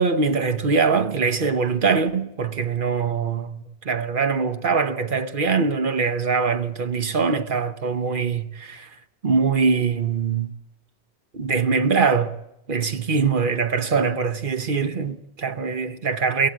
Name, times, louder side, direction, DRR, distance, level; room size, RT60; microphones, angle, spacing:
voice 1, 0.0-8.9 9.2-10.5 11.3-12.3 12.7-16.5, right 5 dB, 55° right, 1.2 m, -23 dB
23.5 x 15.0 x 7.5 m
omnidirectional pair, 1.1 m